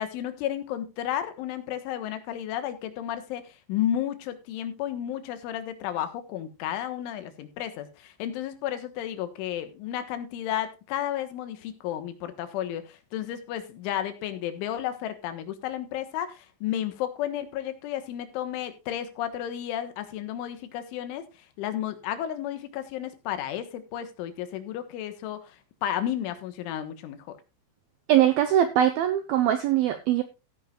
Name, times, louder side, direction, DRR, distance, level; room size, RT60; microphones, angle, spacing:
voice 1, 0.0-21.3 21.6-27.4, left 11 dB, 80° left, 3.8 m, -32 dB
voice 2, 28.1-30.2, right 11 dB, 85° right, 2.1 m, -22 dB
16.0 x 9.7 x 2.4 m
omnidirectional pair, 5.5 m